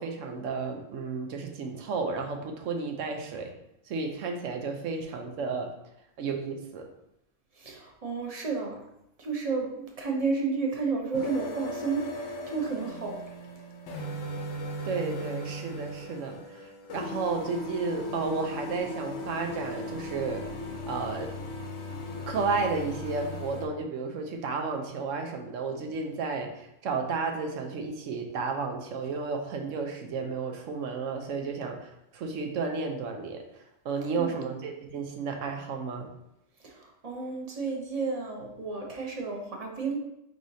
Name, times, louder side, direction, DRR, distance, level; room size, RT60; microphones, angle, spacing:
voice 1, 0.0-3.6 3.8-5.7 6.2-6.9 14.8-20.4 20.9-21.3 22.3-36.1, right 4 dB, 85° right, 4 dB, 1.1 m, -32 dB
voice 2, 7.6-8.8 9.2-13.2 34.1-34.4 36.6-40.0, right 4 dB, 35° right, 1 dB, 0.7 m, -32 dB
sound 1, 11.1-23.7, left 1 dB, 70° left, 1.0 m, -38 dB
4.9 x 4.0 x 2.7 m, 0.82 s
omnidirectional pair, 1.3 m